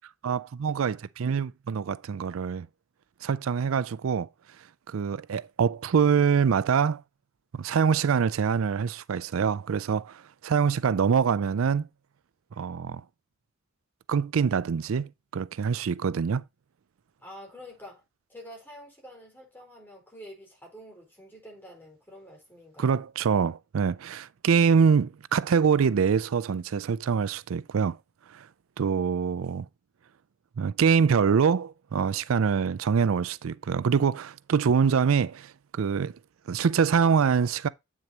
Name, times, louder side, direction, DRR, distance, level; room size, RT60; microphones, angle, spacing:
voice 1, 0.2-2.7 3.2-4.3 4.9-7.0 7.5-11.9 12.6-13.0 14.1-16.4 22.8-28.0 28.3-28.5 28.8-29.7 30.6-36.1 36.5-37.7, right 6 dB, 90° right, 0.4 m, -25 dB
voice 2, 17.2-18.0 18.3-23.0, equal, 10° left, 4.4 m, -47 dB
8.7 x 6.3 x 2.8 m
head